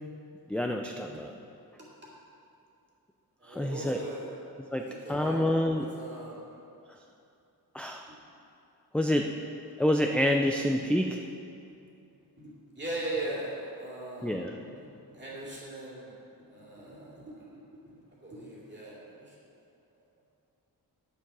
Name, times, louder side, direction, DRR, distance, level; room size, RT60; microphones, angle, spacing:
voice 1, 0.5-1.3 3.5-4.0 4.7-5.9 7.7-8.0 8.9-9.3 9.8-11.2 14.2-14.5, left 1 dB, 5° left, 2 dB, 0.3 m, -27 dB
voice 2, 3.4-4.3 4.8-6.4 12.8-14.4 15.1-16.2 16.5-17.4 18.2-19.3, right 1 dB, 30° right, -6 dB, 2.6 m, -39 dB
10.5 x 7.2 x 6.0 m, 2.6 s
wide cardioid pair, 165°, 39 cm